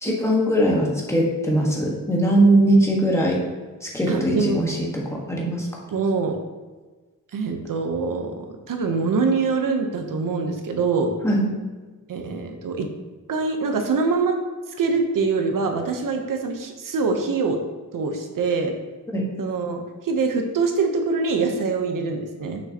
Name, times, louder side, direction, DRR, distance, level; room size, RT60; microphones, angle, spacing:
voice 1, 0.0-3.4 3.8-4.8 5.1-5.7 11.2-11.6 19.1-19.2, right 1 dB, 10° left, -3 dB, 1.4 m, -20 dB
voice 2, 4.1-4.6 5.9-6.4 7.3-11.1 12.1-12.9 13.3-14.4 14.8-17.6 17.9-18.7 19.4-22.6, right 4 dB, 85° right, 4 dB, 0.9 m, -24 dB
6.4 x 5.8 x 2.9 m, 1.3 s
wide cardioid pair, 115°, 32 cm